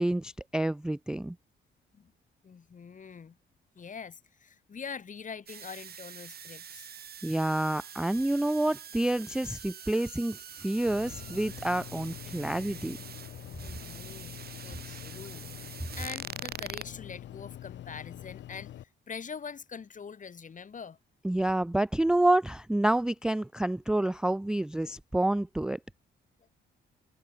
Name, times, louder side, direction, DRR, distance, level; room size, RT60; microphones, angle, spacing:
voice 1, 0.0-1.4 7.2-13.0 21.2-25.8, right 1 dB, 5° right, 0.3 m, -28 dB
voice 2, 2.4-3.4 3.7-6.9 9.8-9.9 13.6-21.0, left 6 dB, 40° left, 2.8 m, -44 dB
sound 1, 5.5-16.9, right 8 dB, 50° right, 1.7 m, -45 dB
sound 2, 10.8-18.8, left 12 dB, 65° left, 0.8 m, -45 dB
cardioid pair, 90°, 20 cm